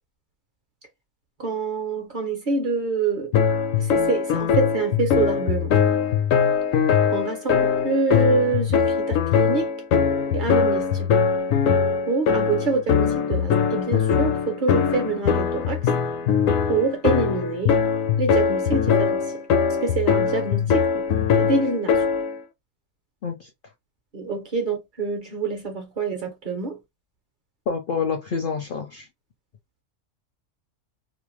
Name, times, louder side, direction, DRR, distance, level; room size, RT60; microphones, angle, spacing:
voice 1, 1.4-3.3 3.8-5.7 7.1-9.7 10.3-11.1 12.1-15.9 16.7-17.8 18.2-19.2 19.8-22.0 24.1-26.8, right 3 dB, 50° right, 0.7 m, -26 dB
sound 1, 3.3-22.4, left 7 dB, 85° left, 1.0 m, -21 dB
voice 2, 27.7-29.1, left 5 dB, 65° left, 0.5 m, -27 dB
2.6 x 2.1 x 3.0 m
omnidirectional pair, 1.3 m